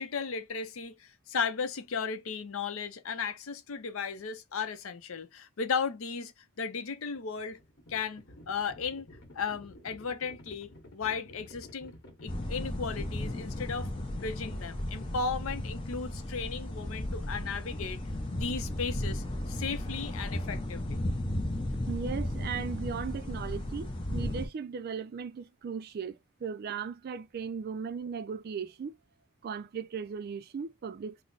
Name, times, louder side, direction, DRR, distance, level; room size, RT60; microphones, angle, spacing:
voice 1, 0.0-6.3 6.6-7.6 7.9-9.1 9.3-11.9 12.2-13.9 14.2-18.0 18.3-21.0, left 5 dB, 80° left, 0.6 m, -35 dB
Livestock farm animals working animals, 7.0-16.0, left 1 dB, 55° left, 1.1 m, -53 dB
sound 1, 12.3-24.5, left 1 dB, 25° left, 0.7 m, -35 dB
voice 2, 21.9-28.9 29.4-31.2, right 6 dB, 50° right, 0.3 m, -37 dB
3.2 x 2.0 x 3.8 m
head